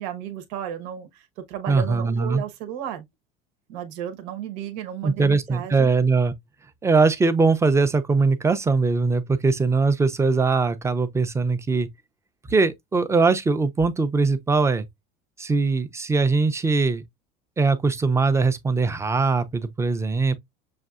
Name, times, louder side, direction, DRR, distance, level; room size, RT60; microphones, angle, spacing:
voice 1, 0.0-3.0 3.7-5.9, right 10 dB, 85° right, 1.1 m, -34 dB
voice 2, 1.7-2.4 5.0-6.3 6.8-11.9 12.5-14.9 15.4-17.0 17.6-20.3, right 4 dB, 15° right, 0.5 m, -21 dB
6.5 x 2.6 x 2.4 m
cardioid pair, 130°, 21 cm